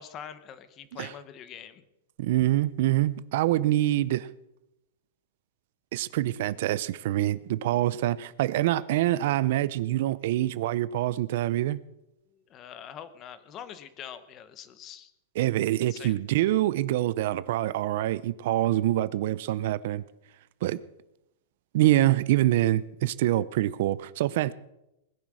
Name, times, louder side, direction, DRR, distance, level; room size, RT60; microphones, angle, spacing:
voice 1, 0.0-1.8 12.3-15.1 15.9-16.2, left 9 dB, 25° left, 1.0 m, -44 dB
voice 2, 2.2-4.3 5.9-11.8 15.4-20.0 20.6-20.8 21.7-24.5, right 14 dB, 55° right, 0.6 m, -25 dB
20.0 x 10.5 x 6.3 m
supercardioid pair, 165°, 0 cm